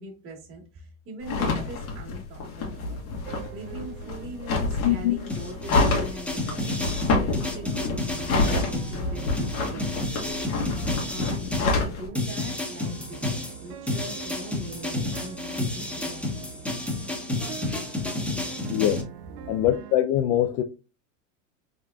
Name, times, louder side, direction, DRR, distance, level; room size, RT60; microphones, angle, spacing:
voice 1, 0.0-10.4 10.8-16.6 16.9-17.1, right 1 dB, 30° right, 1.4 m, -42 dB
sound 1, 1.2-12.1, left 3 dB, 80° left, 1.6 m, -28 dB
sound 2, 2.7-20.0, right 9 dB, 55° right, 0.6 m, -44 dB
voice 2, 4.8-5.2 18.7-19.0 19.5-20.6, left 12 dB, 55° left, 0.5 m, -23 dB
sound 3, 5.3-11.8 12.1-19.0, left 2 dB, 5° left, 0.9 m, -31 dB
3.7 x 3.2 x 2.3 m
supercardioid pair, 115°, 41 cm